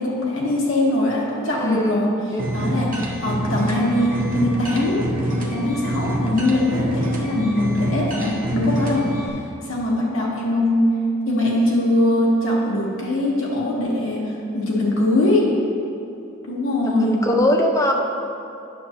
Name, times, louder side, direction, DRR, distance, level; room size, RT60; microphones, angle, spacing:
voice 1, 0.0-2.1 2.5-5.0 5.3-9.1 9.6-10.9 11.3-15.5 16.4-17.2, left 1 dB, 65° left, -4 dB, 1.2 m, -21 dB
voice 2, 1.5-2.4 10.5-10.6 17.0-17.9, left 1 dB, 15° left, 2 dB, 0.5 m, -21 dB
sound 1, 2.4-9.3, right 1 dB, 40° right, 0.8 m, -26 dB
9.4 x 6.7 x 2.9 m, 2.8 s
head